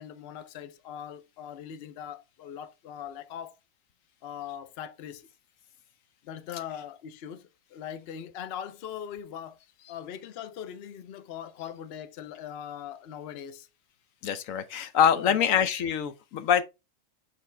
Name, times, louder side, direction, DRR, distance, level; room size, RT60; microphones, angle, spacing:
voice 1, 0.0-3.6 4.2-5.3 6.2-9.6 9.9-13.7 15.1-15.4, left 9 dB, 55° left, 0.8 m, -40 dB
voice 2, 14.2-16.6, left 8 dB, 75° left, 1.0 m, -24 dB
7.1 x 4.2 x 3.3 m
omnidirectional pair, 1.4 m